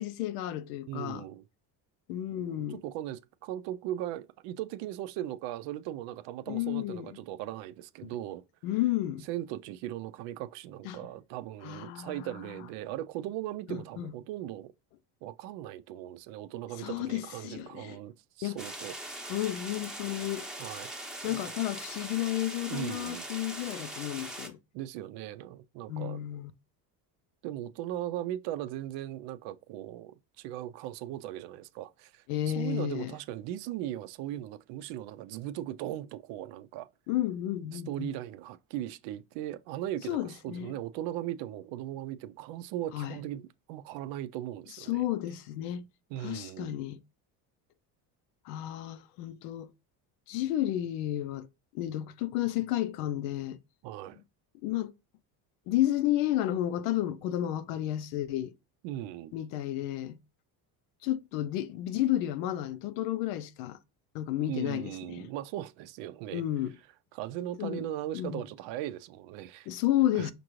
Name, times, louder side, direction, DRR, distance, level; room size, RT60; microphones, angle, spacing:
voice 1, 0.0-1.3 2.1-2.8 6.5-7.1 8.0-8.1 8.6-9.3 10.8-11.0 11.6-12.4 13.7-14.1 16.8-18.0 18.4-18.6 19.3-20.5 21.2-24.6 25.9-26.5 32.3-33.1 37.1-38.1 40.1-40.8 42.9-43.2 44.7-45.9 46.2-47.0 48.5-49.7 50.3-51.5 51.7-53.6 54.6-54.9 55.7-58.5 59.3-60.2 61.0-63.8 64.1-65.3 66.3-66.7 67.6-67.8 68.1-68.4 69.7-70.3, left 13 dB, 80° left, 0.7 m, -32 dB
voice 2, 0.9-1.4 2.3-8.4 9.3-14.7 15.2-18.9 20.6-20.9 21.2-21.4 22.7-23.3 24.7-26.2 27.4-32.2 32.5-36.9 37.7-45.0 46.1-46.8 53.8-54.2 58.8-59.3 64.5-66.4 67.1-69.7 70.1-70.3, right 13 dB, 65° right, 0.5 m, -38 dB
sound 1, 18.6-24.5, right 1 dB, ahead, 0.8 m, -41 dB
5.2 x 2.5 x 3.0 m
supercardioid pair, 85°, 48 cm